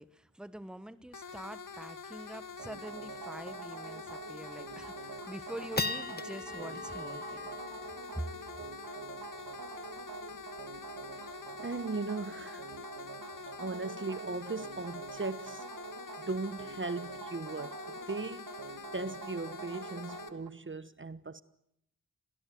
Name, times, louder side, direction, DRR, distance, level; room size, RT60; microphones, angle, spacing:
voice 1, 0.0-7.5 8.1-8.3, right 1 dB, ahead, 1.3 m, -45 dB
sound 1, 1.1-20.3, left 5 dB, 65° left, 1.9 m, -46 dB
sound 2, 2.3-2.4 2.6-2.7 3.1-3.4 3.8-3.9 4.5-4.9 5.3-11.9, left 3 dB, 30° left, 1.2 m, -42 dB
sound 3, 2.6-20.5, right 6 dB, 80° right, 1.9 m, -46 dB
voice 2, 11.6-12.7 13.6-15.7 16.2-18.5 18.9-21.4, right 3 dB, 35° right, 1.2 m, -38 dB
27.0 x 18.0 x 9.4 m
cardioid pair, 45°, 34 cm